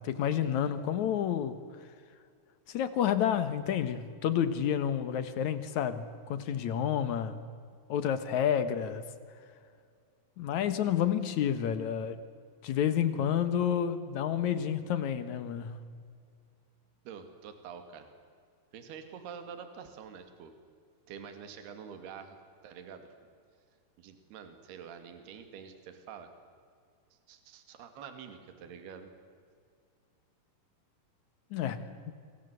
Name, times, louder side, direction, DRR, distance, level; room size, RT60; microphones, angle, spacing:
voice 1, 0.0-1.5 2.7-7.4 7.9-9.0 10.4-12.2 12.6-15.9 31.5-32.1, left 9 dB, 70° left, 12 dB, 1.8 m, -30 dB
voice 2, 17.1-18.1 18.7-20.5 21.1-22.4 22.6-23.1 24.0-26.3 27.3-29.1, right 7 dB, 65° right, 8 dB, 4.1 m, -46 dB
28.5 x 24.5 x 8.3 m, 2.2 s
omnidirectional pair, 5.1 m